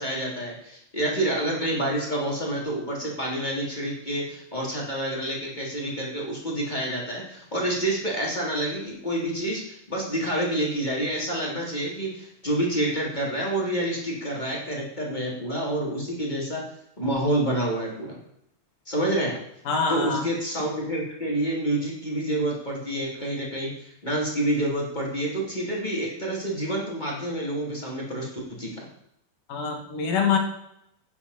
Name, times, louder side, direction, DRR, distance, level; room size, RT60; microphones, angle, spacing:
voice 1, 0.0-16.6 17.0-18.2 18.9-19.4 19.9-28.3 28.6-28.8, right 1 dB, 15° left, -3 dB, 2.8 m, -28 dB
voice 2, 19.7-20.3 29.5-30.4, left 5 dB, 65° left, 2 dB, 3.4 m, -25 dB
12.0 x 9.4 x 4.2 m, 0.76 s
omnidirectional pair, 4.2 m